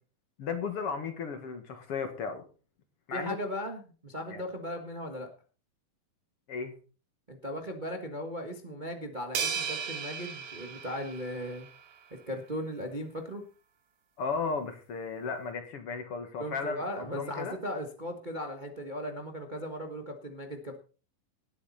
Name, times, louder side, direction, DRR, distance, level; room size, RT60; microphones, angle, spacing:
voice 1, 0.4-2.4 3.1-3.4 4.3-4.4 6.5-6.7 14.2-17.6, left 5 dB, 50° left, 7 dB, 2.3 m, -35 dB
voice 2, 3.1-5.3 7.3-11.7 12.1-13.4 16.4-20.8, equal, 85° right, 4 dB, 0.4 m, -37 dB
sound 1, 9.4-11.8, right 6 dB, 70° right, 2.8 m, -36 dB
19.0 x 8.4 x 4.2 m, 0.37 s
omnidirectional pair, 3.8 m